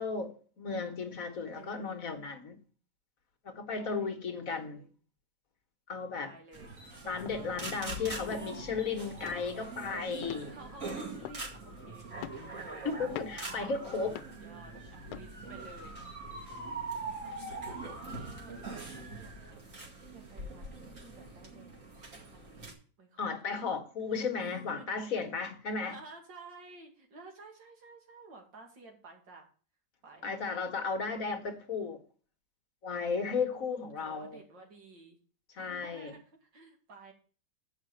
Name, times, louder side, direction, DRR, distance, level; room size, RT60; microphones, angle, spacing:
voice 1, 0.0-2.6 3.4-4.8 5.9-6.3 7.0-10.5 12.8-14.2 23.2-26.0 30.2-32.0 32.8-34.4 35.5-36.1, left 5 dB, 50° left, 1.6 m, -35 dB
voice 2, 1.6-2.0 3.7-4.1 4.5-4.9 6.2-6.7 7.3-7.6 7.9-8.6 10.4-13.3 14.4-16.0 16.6-19.8 20.1-23.7 24.4-24.9 25.8-29.5 30.0-30.3 30.9-31.5 33.3-35.2 35.6-37.1, right 3 dB, 90° right, 2.9 m, -53 dB
sound 1, 6.5-22.7, right 3 dB, 45° right, 2.7 m, -43 dB
sound 2, 6.6-6.9 7.2-7.5 8.0-8.1 8.3-8.8 9.2-9.5 10.2-10.7 11.2-11.7 12.2-12.6 13.1-13.5 14.1-14.4 15.1-15.3 15.9-16.0, left 12 dB, 80° left, 1.3 m, -44 dB
8.1 x 5.8 x 7.7 m
omnidirectional pair, 1.9 m